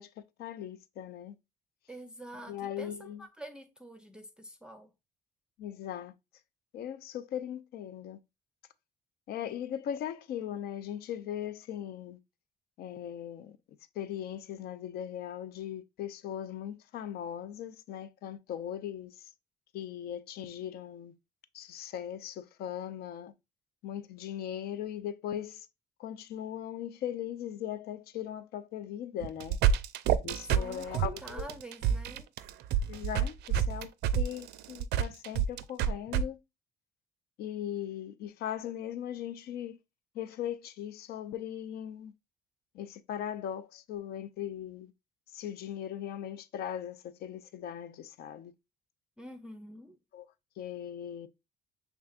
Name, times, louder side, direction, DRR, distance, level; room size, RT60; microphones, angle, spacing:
voice 1, 0.0-1.4 2.5-3.3 5.6-6.1 6.7-8.2 9.3-12.2 12.8-13.6 14.0-19.3 19.7-21.1 21.5-23.3 23.8-25.7 26.0-29.6 30.2-31.5 32.9-36.4 37.4-39.8 40.1-42.1 42.7-44.9 45.3-48.5 50.1-50.3 50.6-51.3, left 10 dB, 65° left, 0.5 m, -39 dB
voice 2, 1.9-4.9 30.4-32.3 49.2-50.0, right 1 dB, 5° right, 0.5 m, -46 dB
sound 1, 29.2-36.2, right 9 dB, 80° right, 0.4 m, -28 dB
5.4 x 3.5 x 2.4 m
cardioid pair, 110°, 17 cm